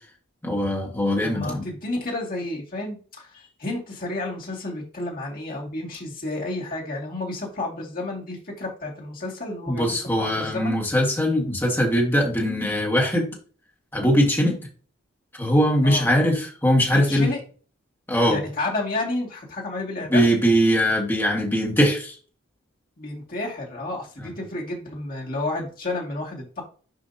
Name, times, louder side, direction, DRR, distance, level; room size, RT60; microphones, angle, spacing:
voice 1, 0.4-1.7 9.7-13.3 13.9-14.6 15.4-17.3 18.1-18.4 20.1-22.1, equal, 10° left, -1 dB, 1.7 m, -21 dB
voice 2, 1.2-10.8 15.8-16.1 16.9-17.4 18.3-20.3 23.0-26.6, left 2 dB, 45° left, -3 dB, 2.2 m, -31 dB
7.5 x 5.0 x 2.8 m, 0.38 s
head